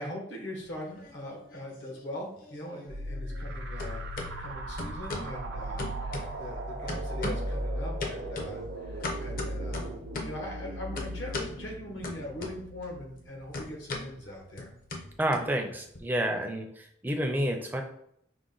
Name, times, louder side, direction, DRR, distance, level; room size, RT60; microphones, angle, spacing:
voice 1, 0.0-4.1 4.4-14.7, left 1 dB, 75° left, 1 dB, 1.0 m, -41 dB
sound 1, 0.7-1.6 1.9-3.5 3.8-4.3 4.8-5.3 5.8-6.6 6.9-7.6 8.0-10.4 11.0-11.6 12.0-12.9 13.1-16.0, left 2 dB, 45° left, 0.6 m, -38 dB
sound 2, 2.9-14.2, right 1 dB, 75° right, 0.6 m, -37 dB
voice 2, 15.2-17.8, right 1 dB, 10° right, 3 dB, 0.4 m, -29 dB
4.9 x 2.1 x 3.8 m, 0.71 s
head